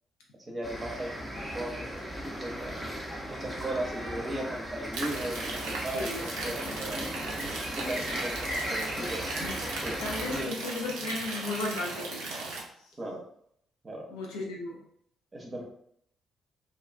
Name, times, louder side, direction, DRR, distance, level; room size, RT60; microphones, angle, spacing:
voice 1, 0.5-2.1 2.4-2.9 3.3-7.1 7.4-9.2 9.8-10.0 10.3-10.5 13.0-13.2 13.8-14.1 15.3-15.6, right 1 dB, 30° right, -1 dB, 0.7 m, -37 dB
sound 1, 0.6-10.5, equal, 5° left, 0.7 m, -37 dB
sound 2, 4.9-12.6, right 3 dB, 65° right, 0.4 m, -37 dB
voice 2, 5.9-6.3 9.4-9.6 10.0-12.3 14.1-14.8, left 2 dB, 70° left, -1 dB, 0.5 m, -35 dB
2.4 x 2.3 x 2.2 m, 0.67 s
figure-of-eight pair, 40°, 0 cm